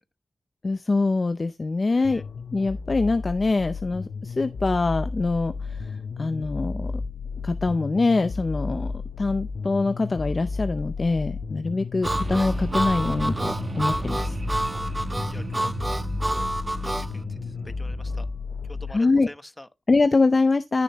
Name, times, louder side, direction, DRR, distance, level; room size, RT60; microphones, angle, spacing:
voice 1, 0.6-2.2 2.5-6.9 7.4-8.9 9.2-14.4 18.9-19.3 19.9-20.8, left 3 dB, 30° left, 0.5 m, -24 dB
voice 2, 1.9-2.2 14.7-15.7 16.2-16.5 16.8-18.3 18.7-19.7, left 1 dB, 15° left, 1.0 m, -45 dB
sound 1, 2.0-18.9, left 4 dB, 60° left, 0.8 m, -33 dB
Harmonica, 12.0-17.1, right 1 dB, 15° right, 0.8 m, -29 dB
sound 2, 12.0-18.3, right 3 dB, 35° right, 1.1 m, -34 dB
13.5 x 6.9 x 3.0 m
wide cardioid pair, 180°, 0 cm